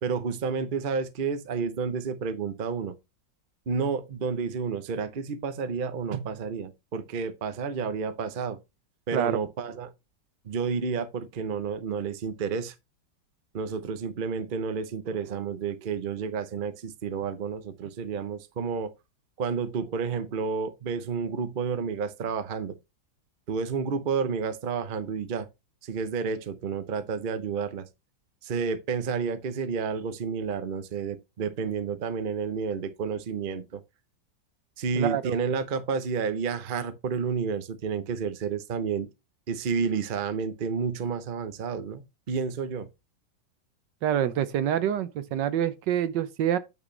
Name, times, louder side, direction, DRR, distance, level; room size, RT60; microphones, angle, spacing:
voice 1, 0.0-2.9 3.7-8.6 9.1-9.9 10.4-12.7 13.5-18.9 19.4-22.8 23.5-25.5 25.8-27.9 28.4-33.8 34.8-39.1 39.5-42.9, right 5 dB, 40° right, 0.7 m, -30 dB
voice 2, 35.0-35.3 44.0-46.6, right 10 dB, 75° right, 1.4 m, -26 dB
8.9 x 6.4 x 3.3 m
omnidirectional pair, 2.0 m